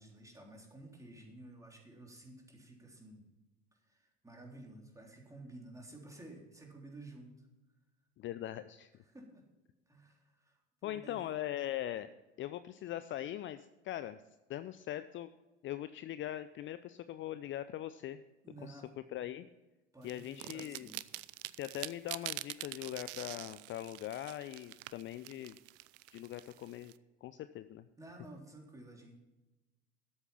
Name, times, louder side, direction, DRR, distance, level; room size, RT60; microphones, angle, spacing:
voice 1, 0.0-3.3 3.7-7.5 9.1-9.5 9.9-11.2 18.4-18.9 19.9-21.0 28.0-29.2, right 2 dB, 10° right, 0 dB, 3.5 m, -53 dB
voice 2, 8.2-8.9 10.8-12.1 12.4-14.2 14.5-15.3 15.6-18.2 18.6-18.8 19.1-19.5 20.0-20.9 21.6-25.6 26.1-26.9 27.2-27.8, left 12 dB, 40° left, 12 dB, 0.6 m, -41 dB
sound 1, 20.1-26.9, right 19 dB, 45° right, 0.5 m, -45 dB
13.0 x 8.2 x 5.7 m, 1.1 s
hypercardioid pair, 75°, 32 cm